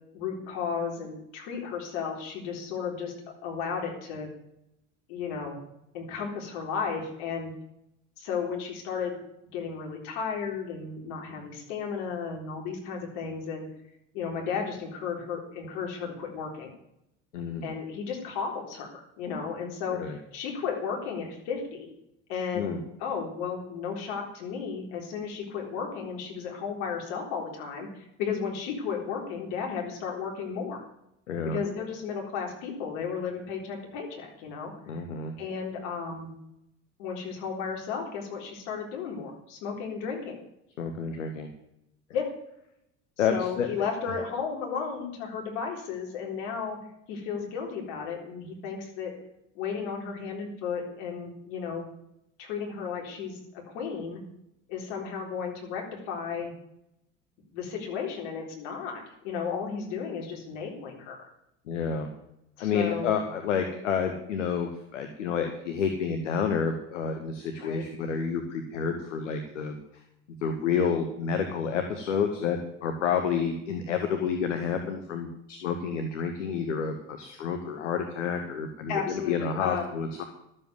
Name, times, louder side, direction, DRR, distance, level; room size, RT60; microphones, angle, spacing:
voice 1, 0.1-3.1 3.4-4.3 5.1-5.6 5.9-7.5 8.2-9.2 9.5-13.7 14.1-16.7 17.6-21.9 22.3-30.8 31.4-34.7 35.4-36.3 37.0-40.4 42.1-42.3 43.3-46.8 47.1-49.1 49.5-51.9 52.4-54.2 54.7-56.5 57.5-61.3 62.6-63.2 67.6-67.8 78.9-79.8, left 6 dB, 70° left, 1 dB, 4.0 m, -34 dB
voice 2, 17.3-17.7 19.9-20.2 22.5-22.8 31.3-31.6 34.9-35.3 40.8-41.5 43.2-43.9 61.7-62.1 62.6-69.8 70.4-80.2, left 6 dB, 85° left, 6 dB, 1.3 m, -29 dB
12.5 x 7.8 x 8.1 m, 0.80 s
hypercardioid pair, 65°, 36 cm